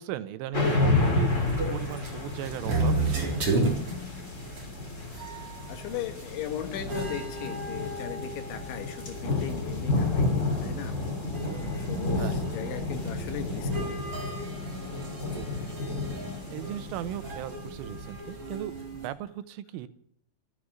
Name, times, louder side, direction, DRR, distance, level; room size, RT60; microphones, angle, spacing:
voice 1, 0.0-3.0 11.4-11.8 12.2-12.4 15.3-15.5 16.5-19.9, right 13 dB, 90° right, 13 dB, 3.5 m, -37 dB
sound 1, 0.5-18.3, left 2 dB, 20° left, 2.6 m, -31 dB
sound 2, 1.3-19.1, right 2 dB, 30° right, 4.4 m, -35 dB
voice 2, 5.1-11.0 11.4-14.0 14.9-15.7, left 10 dB, 75° left, 6 dB, 4.0 m, -39 dB
14.5 x 11.5 x 8.6 m, 0.64 s
omnidirectional pair, 5.6 m